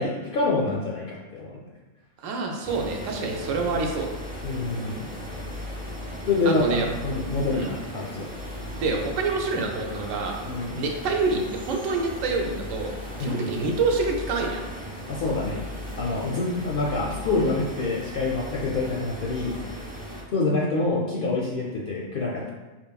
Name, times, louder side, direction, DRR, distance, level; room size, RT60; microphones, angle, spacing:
voice 1, 0.0-1.6 4.4-5.0 6.3-8.3 10.4-10.8 13.2-13.5 15.1-15.6 16.0-19.6 20.3-22.5, left 3 dB, 60° left, -3 dB, 0.6 m, -26 dB
voice 2, 2.2-4.1 6.5-6.9 7.5-7.7 8.8-10.4 10.7-12.9 13.2-14.6, right 3 dB, 75° right, 1 dB, 1.0 m, -27 dB
sound 1, 2.6-20.2, equal, 10° right, 0.6 m, -37 dB
4.6 x 3.1 x 2.3 m, 1.2 s
omnidirectional pair, 1.4 m